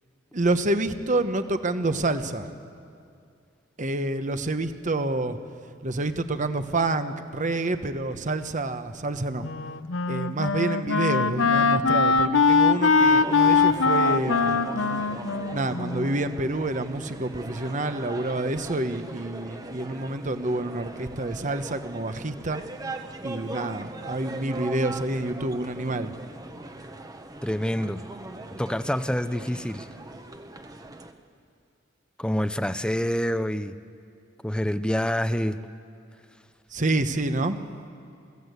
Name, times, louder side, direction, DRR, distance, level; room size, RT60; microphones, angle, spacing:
voice 1, 0.3-2.5 3.8-5.4 5.8-9.5 10.1-14.9 15.5-22.6 23.2-26.1 36.7-37.6, right 2 dB, 40° right, 9 dB, 1.1 m, -28 dB
Wind instrument woodwind instrument, 9.4-16.6, left 4 dB, 80° left, 0.8 m, -22 dB
sound 1, 12.9-31.1, right 2 dB, 20° right, 1.0 m, -40 dB
voice 2, 27.4-28.0 28.6-29.9 32.2-33.7 34.4-35.6, equal, 5° left, 12 dB, 0.5 m, -26 dB
24.5 x 16.0 x 8.2 m, 2.4 s
head